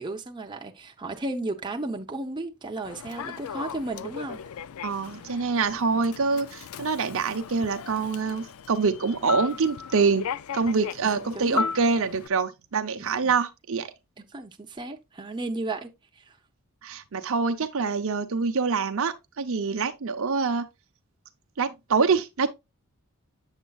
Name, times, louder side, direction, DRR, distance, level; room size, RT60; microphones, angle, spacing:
voice 1, 0.0-4.4 11.0-11.7 13.2-13.3 14.2-16.4, right 2 dB, 20° right, 0.8 m, -34 dB
Human voice / Subway metro underground, 2.8-12.3, left 6 dB, 70° left, 0.4 m, -36 dB
voice 2, 4.8-10.3 10.5-13.9 16.8-20.7 21.6-22.5, right 4 dB, 65° right, 0.7 m, -25 dB
8.1 x 7.2 x 2.3 m
head